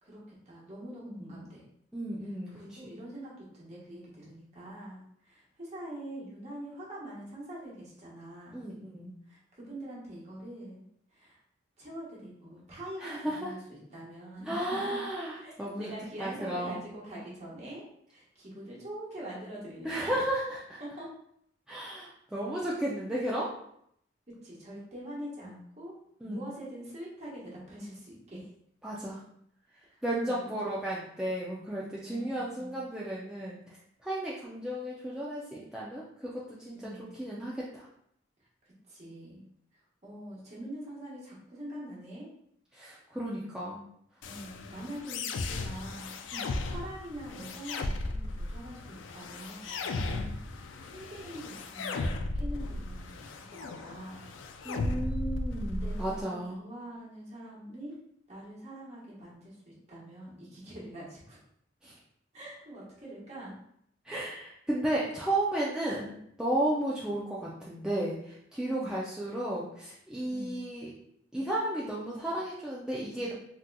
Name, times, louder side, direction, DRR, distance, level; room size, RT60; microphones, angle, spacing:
voice 1, 0.0-1.7 2.5-8.7 9.3-10.8 11.1-11.4 11.8-14.6 14.9-15.0 15.4-20.1 20.8-21.1 24.4-25.9 26.2-28.5 29.9-30.6 30.9-31.1 32.0-32.8 36.7-37.1 38.6-39.4 40.0-42.3 44.2-54.3 55.8-57.9 58.3-61.4 62.3-63.6 66.0-66.1 68.7-69.1 70.3-70.6, right 1 dB, 35° right, -6 dB, 1.1 m, -44 dB
voice 2, 1.1-1.4 1.9-2.9 8.5-9.1 13.0-13.5 14.5-15.9 16.2-16.8 19.8-20.8 21.7-23.5 26.2-26.4 28.8-29.2 30.0-33.6 34.0-37.9 42.7-43.8 46.3-46.5 54.6-56.6 61.8-62.0 64.0-66.1 66.4-70.9 71.3-73.3, right 1 dB, 5° right, -7 dB, 0.3 m, -34 dB
sound 1, 44.2-56.2, left 2 dB, 85° left, 0.3 m, -36 dB
3.7 x 2.7 x 2.2 m, 0.71 s
head